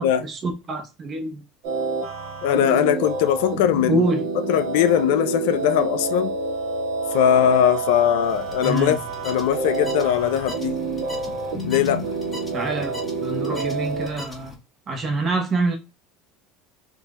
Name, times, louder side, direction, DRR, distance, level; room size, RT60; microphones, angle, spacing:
voice 1, 0.0-1.4 3.9-4.3 8.6-9.0 12.5-12.9 13.2-14.6 14.9-15.8, right 2 dB, 40° right, 1.1 m, -25 dB
sound 1, 1.6-14.1, right 3 dB, 75° right, 1.6 m, -28 dB
voice 2, 2.4-4.1 4.5-6.3 7.1-9.0 9.2-10.8 11.7-12.1, left 10 dB, 75° left, 0.4 m, -20 dB
sound 2, 8.2-14.6, left 1 dB, 15° left, 1.5 m, -40 dB
3.9 x 2.6 x 2.4 m
hypercardioid pair, 85°, 0 cm